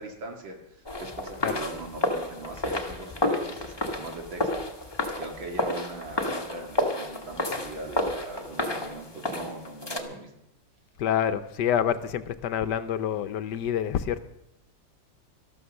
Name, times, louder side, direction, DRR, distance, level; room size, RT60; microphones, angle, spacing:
voice 1, 0.0-10.3, right 2 dB, 85° right, 3 dB, 2.9 m, -40 dB
sound 1, 0.8-10.0, left 1 dB, 15° left, 1.2 m, -31 dB
voice 2, 11.0-14.2, left 9 dB, 70° left, 12 dB, 1.2 m, -27 dB
13.0 x 12.5 x 6.4 m, 0.82 s
omnidirectional pair, 2.1 m